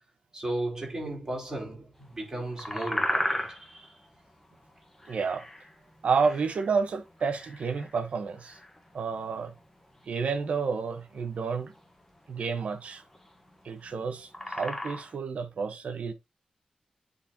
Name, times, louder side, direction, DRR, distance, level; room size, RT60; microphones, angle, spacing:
voice 1, 0.3-4.0, right 1 dB, 25° right, 3.9 m, -35 dB
sound 1, 2.2-15.1, left 1 dB, 15° left, 1.2 m, -36 dB
voice 2, 5.1-5.5 6.0-8.6 8.9-9.5 10.1-11.7 12.3-13.0 13.6-16.1, right 5 dB, 70° right, 1.1 m, -30 dB
9.9 x 4.1 x 2.9 m
wide cardioid pair, 150°, 2 cm